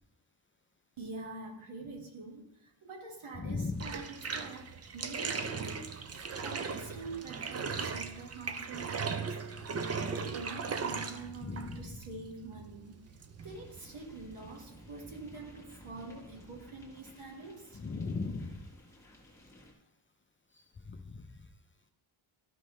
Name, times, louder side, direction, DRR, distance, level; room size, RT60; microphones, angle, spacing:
voice 1, 1.0-13.0 13.4-17.8, right 3 dB, 80° right, 0 dB, 1.9 m, -46 dB
voice 2, 3.4-4.0 11.4-12.0 17.7-18.7 20.5-21.5, left 3 dB, 25° left, 5 dB, 0.5 m, -38 dB
Bathtub (filling or washing), 3.7-15.4, right 5 dB, 35° right, 0.4 m, -38 dB
sound 1, 13.4-19.7, left 1 dB, 5° left, 1.3 m, -56 dB
12.5 x 5.3 x 3.1 m, 0.82 s
wide cardioid pair, 180°, 49 cm